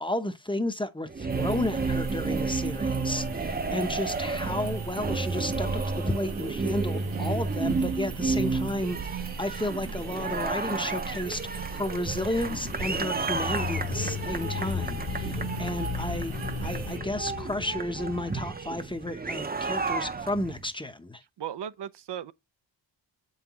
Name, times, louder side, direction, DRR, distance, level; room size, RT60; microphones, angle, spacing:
voice 1, 0.0-5.7 6.1-21.2, left 1 dB, 10° left, 0.8 m, -32 dB
sound 1, 1.1-20.7, right 4 dB, 20° right, 0.7 m, -32 dB
sound 2, 1.3-17.0, right 6 dB, 85° right, 1.4 m, -39 dB
voice 2, 2.6-2.9 21.4-22.3, right 10 dB, 65° right, 0.7 m, -37 dB
Bicycle / Mechanisms, 12.3-18.5, left 8 dB, 30° left, 0.5 m, -36 dB
8.0 x 5.7 x 3.0 m
cardioid pair, 100°, 45 cm